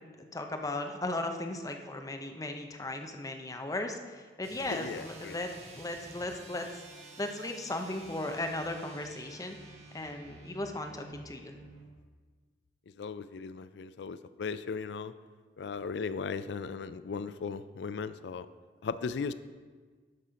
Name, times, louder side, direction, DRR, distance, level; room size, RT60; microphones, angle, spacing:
voice 1, 0.2-5.5 5.8-6.8 7.2-9.6 9.9-11.5, left 2 dB, 20° left, 5 dB, 0.6 m, -36 dB
sound 1, 4.4-11.9, right 2 dB, 40° right, 1.3 m, -51 dB
voice 2, 4.7-5.4 13.0-15.1 15.6-18.5 18.8-19.3, left 5 dB, 70° left, 14 dB, 0.4 m, -37 dB
12.0 x 4.2 x 5.0 m, 1.5 s
head